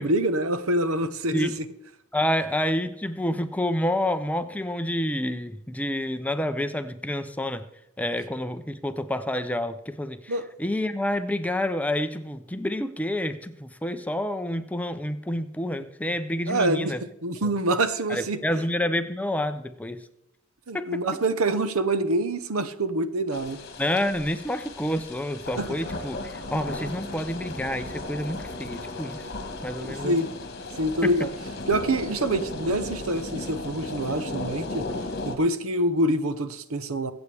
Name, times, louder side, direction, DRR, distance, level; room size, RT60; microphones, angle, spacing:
voice 1, 0.0-1.5 10.3-10.4 16.5-16.9 17.2-18.4 20.7-23.6 25.6-25.8 29.8-30.3 30.8-31.3 31.7-34.9 35.2-37.1, right 1 dB, 80° right, 12 dB, 1.0 m, -26 dB
voice 2, 2.1-7.7 8.0-17.0 17.4-17.5 18.1-20.0 20.7-21.0 23.8-29.3 29.6-30.1 31.0-31.1, left 1 dB, 5° left, 10 dB, 0.5 m, -28 dB
sound 1, 23.3-35.4, left 2 dB, 45° left, 1.6 m, -35 dB
23.5 x 8.2 x 3.4 m, 0.84 s
head